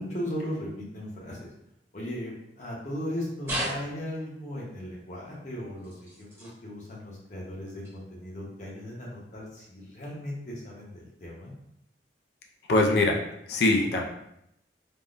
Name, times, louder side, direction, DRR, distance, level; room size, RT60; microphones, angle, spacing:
voice 1, 0.0-1.4 1.9-5.9 6.2-11.5, equal, 40° left, -4 dB, 0.8 m, -37 dB
sound 1, 3.4-4.3 5.8-6.5 7.8-8.0 8.8-8.9, right 1 dB, 15° right, 0.9 m, -35 dB
voice 2, 12.7-13.2 13.5-14.0, left 2 dB, 65° left, 1 dB, 0.4 m, -22 dB
3.5 x 2.1 x 2.5 m, 0.78 s
head